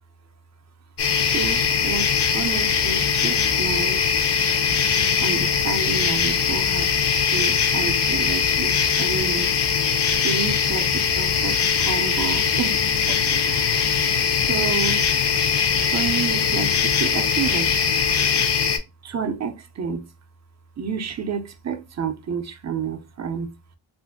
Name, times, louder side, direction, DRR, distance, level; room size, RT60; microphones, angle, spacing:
sound 1, 1.0-18.8, left 7 dB, 60° left, 0.5 m, -21 dB
voice 1, 1.2-4.0 5.2-6.9 7.3-9.5 10.2-12.9 13.2-14.1 14.5-15.0 15.4-15.5 15.9-17.8 19.0-20.1 20.8-23.6, right 6 dB, 35° right, 0.5 m, -30 dB
3.0 x 2.5 x 2.4 m
wide cardioid pair, 70°, 47 cm